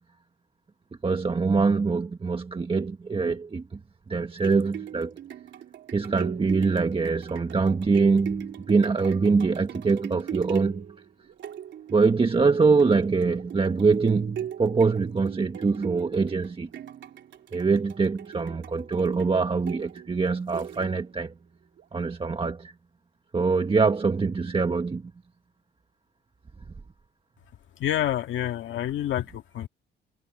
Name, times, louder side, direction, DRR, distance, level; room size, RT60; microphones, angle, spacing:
voice 1, 1.0-3.8 4.1-5.1 5.9-10.8 11.9-16.7 17.5-21.3 21.9-22.7 23.3-25.1, right 4 dB, 25° right, 1.5 m, -24 dB
sound 1, 4.1-21.2 21.8-21.9, right 10 dB, 70° right, 3.2 m, -40 dB
voice 2, 27.8-29.7, left 12 dB, 75° left, 1.9 m, -28 dB
cardioid pair, 90°, 20 cm